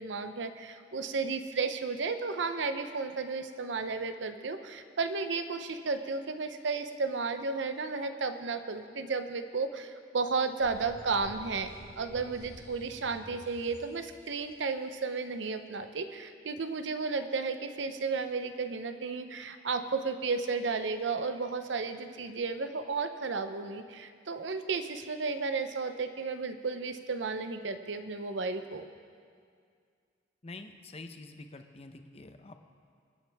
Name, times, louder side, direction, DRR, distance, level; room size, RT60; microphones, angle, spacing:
voice 1, 0.0-28.9, right 4 dB, 80° right, 9 dB, 0.7 m, -33 dB
sound 1, 10.6-14.5, equal, 20° right, 1.7 m, -51 dB
voice 2, 30.4-32.6, left 2 dB, 35° left, 7 dB, 0.8 m, -47 dB
25.5 x 9.1 x 3.5 m, 2.2 s
head